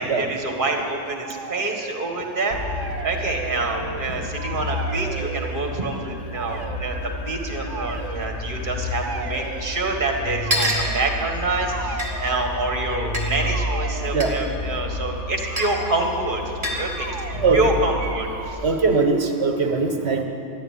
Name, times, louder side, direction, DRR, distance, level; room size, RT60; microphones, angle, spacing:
voice 1, 0.0-2.6 3.0-16.4 16.8-18.6, right 2 dB, 45° right, 3 dB, 1.9 m, -27 dB
sound 1, 1.2-2.1 2.5-4.0 4.3-5.6 6.3-6.8 7.6-8.3 9.0-9.7 10.3-11.0 11.5-12.5 13.3-14.5 15.4-15.9 16.8-17.6 18.0-18.6, right 5 dB, 90° right, 1.2 m, -36 dB
sound 2, 2.5-18.5, left 1 dB, 50° left, 0.9 m, -31 dB
sound 3, 10.5-10.9 12.0-12.1 13.1-13.3 14.2-14.4 15.6-15.7 16.6-16.9, equal, 30° right, 2.9 m, -24 dB
voice 2, 18.6-20.2, right 4 dB, 65° right, 5 dB, 1.5 m, -20 dB
14.0 x 11.0 x 8.7 m, 2.7 s
omnidirectional pair, 1.2 m